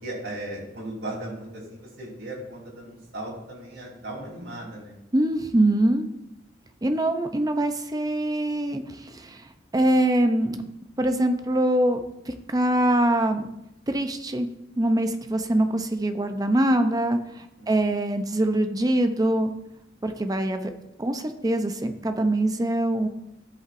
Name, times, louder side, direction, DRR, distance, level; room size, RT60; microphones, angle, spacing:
voice 1, 0.0-5.0 17.6-17.9, right 1 dB, 65° right, -5 dB, 3.4 m, -37 dB
voice 2, 5.1-6.1 6.8-10.6 11.0-12.0 12.3-13.5 13.9-14.5 14.8-19.5 20.0-20.7 21.0-23.1, right 1 dB, 20° right, 7 dB, 0.6 m, -23 dB
14.5 x 5.5 x 2.6 m, 0.86 s
head